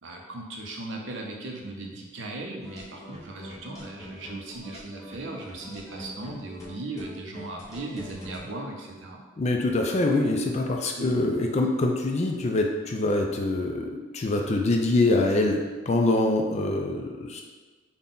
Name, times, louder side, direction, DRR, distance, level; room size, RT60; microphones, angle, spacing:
voice 1, 0.0-9.2 11.0-11.1, right 2 dB, 70° right, 1 dB, 0.6 m, -37 dB
sound 1, 2.6-8.5, equal, 15° left, 0.8 m, -44 dB
voice 2, 9.4-17.4, left 2 dB, 35° left, 2 dB, 0.4 m, -24 dB
3.9 x 2.2 x 3.7 m, 1.3 s
head